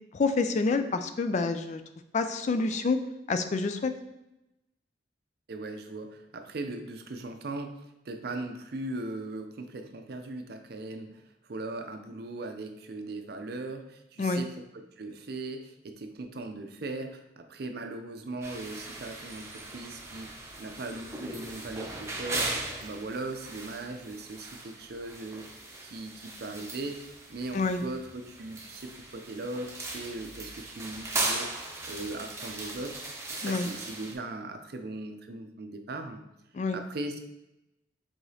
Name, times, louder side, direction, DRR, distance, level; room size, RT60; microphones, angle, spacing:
voice 1, 0.1-1.8 2.1-3.0 3.3-3.9 14.2-14.4 27.5-27.8 33.4-33.7 36.5-36.8, left 3 dB, 40° left, 9 dB, 0.3 m, -27 dB
voice 2, 5.5-11.2 11.5-25.5 25.8-31.5 31.9-33.0 33.3-36.2 36.7-37.2, right 2 dB, 60° right, 6 dB, 0.5 m, -39 dB
sound 1, 18.4-34.1, right 2 dB, 15° right, 0.7 m, -38 dB
4.8 x 3.8 x 2.8 m, 0.90 s
head